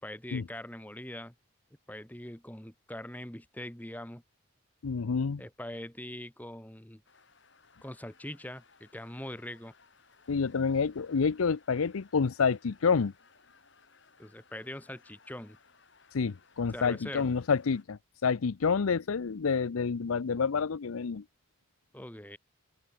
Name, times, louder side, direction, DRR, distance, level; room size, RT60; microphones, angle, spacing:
voice 1, 0.0-1.3 1.9-4.2 5.4-7.0 7.8-9.7 14.2-15.6 16.7-17.3 21.9-22.4, left 1 dB, 10° left, 1.6 m, -42 dB
voice 2, 4.8-5.4 10.3-13.1 16.1-21.2, left 5 dB, 80° left, 0.6 m, -28 dB
sound 1, 7.0-17.8, left 5 dB, 55° left, 7.8 m, -62 dB
open air
head